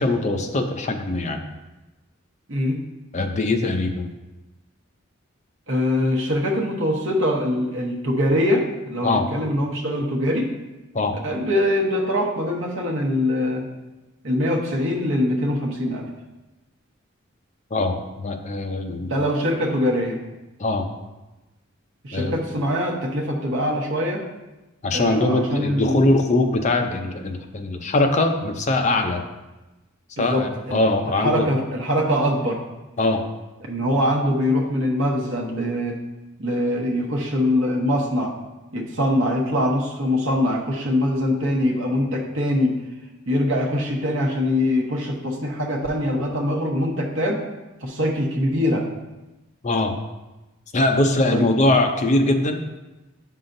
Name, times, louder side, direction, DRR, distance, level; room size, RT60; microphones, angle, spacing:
voice 1, 0.0-1.4 3.1-4.0 9.0-9.2 10.9-11.1 17.7-19.1 20.6-20.8 22.1-22.3 24.8-29.2 30.2-31.5 33.0-33.2 49.6-49.9 50.7-52.6, left 2 dB, 35° left, 4 dB, 0.6 m, -21 dB
voice 2, 2.5-2.8 5.7-10.5 11.2-13.6 14.2-16.1 19.0-20.2 22.0-24.2 24.9-26.0 30.2-32.6 33.7-36.0 36.4-38.3 38.7-42.7 43.3-47.4 47.8-48.8 51.3-51.5, left 1 dB, 65° right, -1 dB, 1.1 m, -23 dB
8.6 x 5.6 x 2.6 m, 1.1 s
head